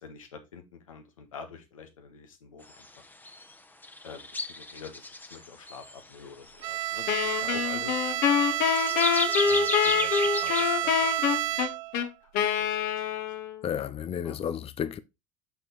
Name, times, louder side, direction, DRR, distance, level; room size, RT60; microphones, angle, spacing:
voice 1, 0.0-0.6 0.9-2.6 4.0-7.0 7.4-8.0 9.5-10.1 10.4-10.5 10.8-11.1 11.4-11.5 14.2-14.4, left 5 dB, 90° left, 1.5 m, -46 dB
sound 1, 2.6-2.9 3.1-3.5 3.8-6.1 6.5-7.6 8.4-11.1, left 2 dB, 10° left, 1.0 m, -34 dB
Bowed string instrument, 6.6-12.0, right 16 dB, 80° right, 0.4 m, -30 dB
Wind instrument woodwind instrument, 7.1-13.6, left 8 dB, 65° left, 1.4 m, -26 dB
voice 2, 13.6-15.0, left 9 dB, 35° left, 0.6 m, -32 dB
6.2 x 5.7 x 4.1 m
hypercardioid pair, 70°, 17 cm